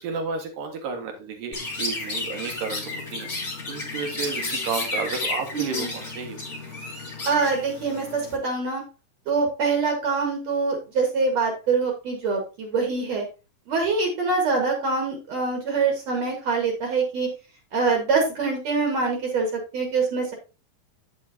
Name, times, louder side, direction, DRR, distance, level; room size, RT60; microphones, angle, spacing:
voice 1, 0.0-6.6, right 5 dB, 75° right, 3 dB, 3.2 m, -32 dB
Chirp tweet, 1.5-8.4, left 2 dB, 30° left, 1.5 m, -32 dB
voice 2, 5.5-5.9 7.3-8.8 9.3-13.3 13.7-17.3 17.7-20.3, right 4 dB, 55° right, 2 dB, 2.7 m, -24 dB
9.5 x 7.2 x 2.8 m, 0.30 s
omnidirectional pair, 3.9 m